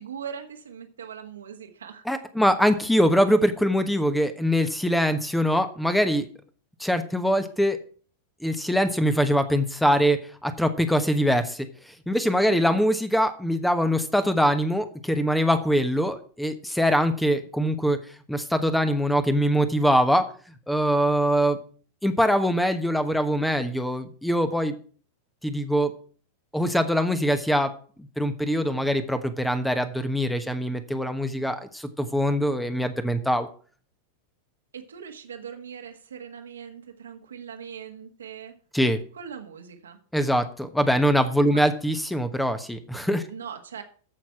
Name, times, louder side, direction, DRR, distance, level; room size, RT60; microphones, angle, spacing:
voice 1, 0.0-2.0 12.5-12.8 34.7-38.5 39.1-40.0 41.5-41.7 43.3-43.8, right 7 dB, 70° right, 6 dB, 1.6 m, -40 dB
voice 2, 2.1-6.3 6.8-7.8 8.4-11.7 12.1-18.0 18.3-20.2 20.7-21.6 22.0-24.7 25.4-25.9 26.5-27.7 28.0-33.5 38.7-39.0 40.1-43.2, equal, 5° left, 10 dB, 1.1 m, -23 dB
14.0 x 5.9 x 5.8 m, 0.42 s
figure-of-eight pair, 90°, 0 cm